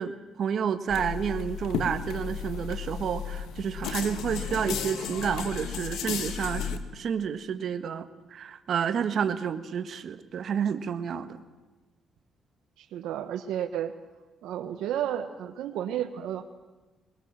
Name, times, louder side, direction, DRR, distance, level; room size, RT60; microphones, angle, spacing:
voice 1, 0.0-8.0 8.3-11.4, right 7 dB, 60° right, 9 dB, 1.6 m, -30 dB
sound 1, 0.9-6.8, left 7 dB, 85° left, 1.7 m, -34 dB
voice 2, 12.8-13.9 14.4-16.4, right 10 dB, 85° right, 7 dB, 1.3 m, -32 dB
22.0 x 20.5 x 7.6 m, 1.2 s
cardioid pair, 90°, 0 cm